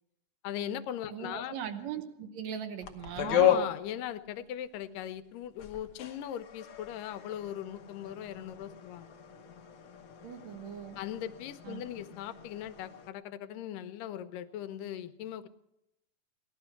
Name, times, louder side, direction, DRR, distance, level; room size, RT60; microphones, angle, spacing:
voice 1, 0.4-1.5 3.2-9.1 11.0-15.5, left 10 dB, 85° left, 12 dB, 2.4 m, -39 dB
voice 2, 1.1-3.6 10.2-11.0 11.6-11.8, right 8 dB, 65° right, 8 dB, 2.0 m, -40 dB
sound 1, 2.8-5.0 5.4-13.1, left 9 dB, 70° left, 1.3 m, -34 dB
18.5 x 12.5 x 5.8 m, 0.87 s
omnidirectional pair, 3.8 m